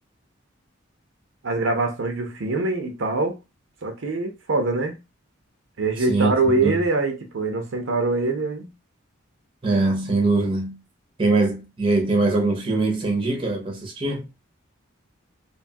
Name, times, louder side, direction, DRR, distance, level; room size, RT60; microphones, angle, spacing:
voice 1, 1.4-3.4 3.8-5.0 5.8-8.7, right 3 dB, 65° right, 0.6 m, -24 dB
voice 2, 6.1-6.8 9.6-10.8 11.2-14.3, right 3 dB, 25° right, 0.7 m, -22 dB
2.6 x 2.3 x 2.6 m
head